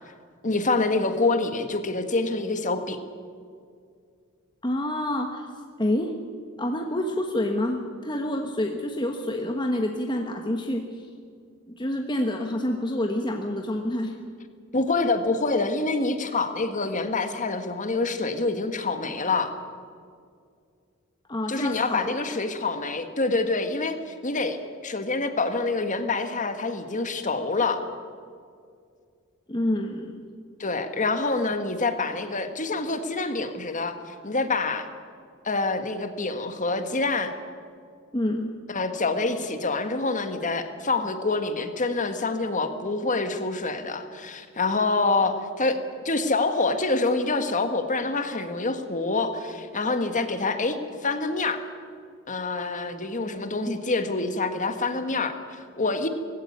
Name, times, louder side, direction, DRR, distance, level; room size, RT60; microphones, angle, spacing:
voice 1, 0.4-3.0 14.7-19.5 21.5-27.8 30.6-34.9 35.4-37.3 38.7-45.8 46.1-51.6 52.3-56.1, left 3 dB, 35° left, 8 dB, 1.6 m, -26 dB
voice 2, 4.6-5.5 5.8-6.1 6.6-10.8 11.7-14.1 21.3-22.1 29.5-30.3 38.1-38.5 53.7-53.8, left 1 dB, 20° left, 3 dB, 1.3 m, -27 dB
19.5 x 16.0 x 9.5 m, 2.2 s
head